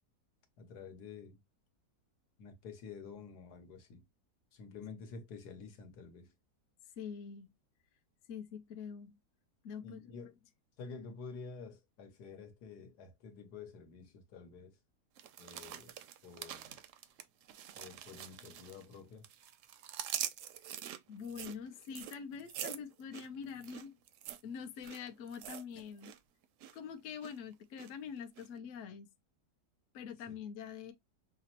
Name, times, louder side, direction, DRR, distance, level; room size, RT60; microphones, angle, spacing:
voice 1, 0.6-1.4 2.4-4.0 4.5-6.3 9.8-10.4 10.8-14.8 15.4-16.0 16.2-16.8 17.7-19.2 30.3-30.4, left 5 dB, 80° left, 1.5 m, -49 dB
voice 2, 7.0-7.5 8.3-9.2 9.6-10.0 21.1-23.9 24.4-26.1 26.7-29.1 29.9-30.9, left 7 dB, 60° left, 0.9 m, -45 dB
sound 1, 15.2-19.0 19.2-26.2 26.4-26.8 27.2-27.9 28.4-28.5, right 10 dB, 70° right, 0.7 m, -45 dB
5.7 x 2.0 x 2.8 m
omnidirectional pair, 1.7 m